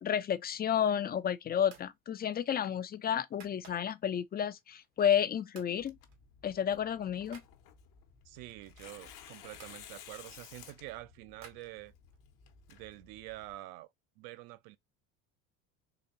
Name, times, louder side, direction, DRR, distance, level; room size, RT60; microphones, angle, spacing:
voice 1, 0.0-6.0 6.4-7.4, left 9 dB, 25° left, 0.4 m, -31 dB
sound 1, 0.8-1.2 1.6-2.0 2.3-4.1 4.6-5.2 5.5-5.8 6.1-7.5 8.3-9.8 10.4-12.2, right 6 dB, 80° right, 1.5 m, -58 dB
Tearing, 5.8-13.5, left 9 dB, 65° left, 1.1 m, -55 dB
voice 2, 8.2-11.9 12.7-13.9 14.2-14.8, right 17 dB, 65° right, 0.7 m, -47 dB
4.0 x 2.9 x 2.6 m
hypercardioid pair, 80°, 41 cm